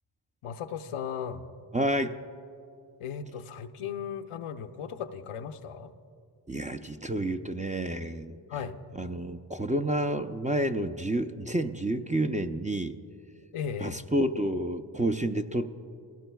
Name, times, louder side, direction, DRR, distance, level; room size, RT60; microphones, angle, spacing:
voice 1, 0.4-1.5 3.0-5.9 8.5-8.8 13.5-14.0, left 7 dB, 85° left, 8 dB, 0.7 m, -36 dB
voice 2, 1.7-2.2 6.5-8.4 9.0-12.9 13.8-15.7, right 1 dB, 15° right, 6 dB, 0.5 m, -29 dB
22.5 x 16.5 x 2.3 m, 2.6 s
cardioid pair, 45°, 50 cm